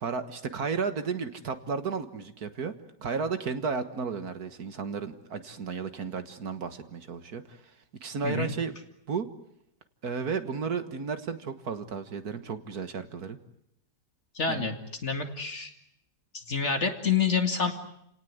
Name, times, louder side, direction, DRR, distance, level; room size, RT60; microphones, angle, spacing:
voice 1, 0.0-2.7 3.0-7.6 8.0-8.7 9.1-9.3 10.0-13.4 14.5-14.8, right 5 dB, 60° right, 10 dB, 1.9 m, -33 dB
voice 2, 14.3-14.7 15.0-15.7 16.5-17.7, left 6 dB, 40° left, 6 dB, 2.5 m, -27 dB
30.0 x 18.5 x 9.5 m, 0.77 s
omnidirectional pair, 1.8 m